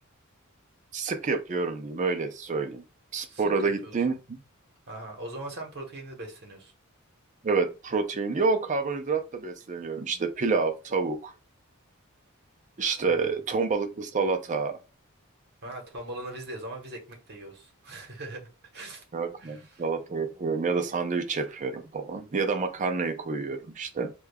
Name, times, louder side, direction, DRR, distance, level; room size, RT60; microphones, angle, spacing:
voice 1, 0.9-2.8 3.1-4.1 7.4-11.3 12.8-14.8 19.1-24.1, right 4 dB, 35° right, 0.5 m, -28 dB
voice 2, 3.3-3.9 4.9-6.7 13.1-13.4 15.6-19.0 19.4-19.8, right 1 dB, 50° right, 1.0 m, -41 dB
5.0 x 2.3 x 2.2 m
head